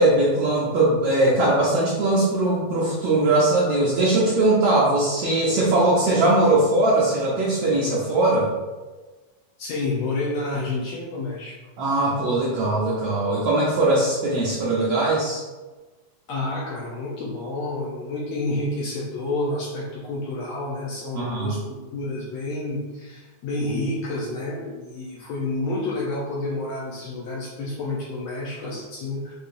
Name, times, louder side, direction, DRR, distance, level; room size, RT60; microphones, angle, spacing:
voice 1, 0.0-8.5 11.8-15.4 21.1-21.5, right 2 dB, 85° right, -6 dB, 1.3 m, -20 dB
voice 2, 9.6-11.6 16.3-29.3, left 2 dB, 75° left, -4 dB, 1.6 m, -29 dB
6.5 x 2.8 x 2.5 m, 1.3 s
omnidirectional pair, 3.5 m